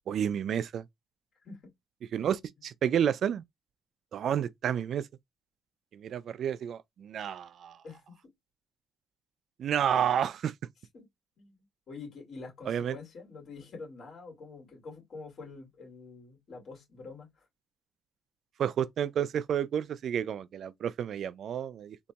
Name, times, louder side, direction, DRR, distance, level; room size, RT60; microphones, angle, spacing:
voice 1, 0.1-0.8 2.1-3.4 4.1-5.1 5.9-7.8 9.6-10.5 12.7-13.0 18.6-22.0, right 9 dB, 65° right, 0.3 m, -30 dB
voice 2, 7.8-8.2 10.9-11.1 11.4-17.5, left 4 dB, 60° left, 2.3 m, -46 dB
4.0 x 2.5 x 2.2 m
cardioid pair, 90°, 0 cm